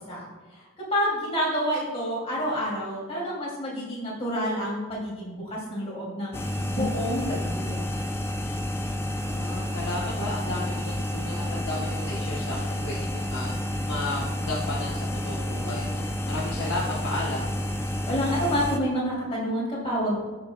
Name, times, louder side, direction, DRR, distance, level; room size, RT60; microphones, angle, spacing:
voice 1, 0.9-6.4 6.6-7.9 18.1-20.2, equal, 30° left, -6 dB, 2.6 m, -28 dB
sound 1, 6.3-18.8, left 1 dB, 10° left, 0.4 m, -30 dB
voice 2, 9.2-13.5 13.8-16.0 16.3-17.4, left 2 dB, 55° left, -4 dB, 1.0 m, -33 dB
13.5 x 6.0 x 2.2 m, 1.3 s
head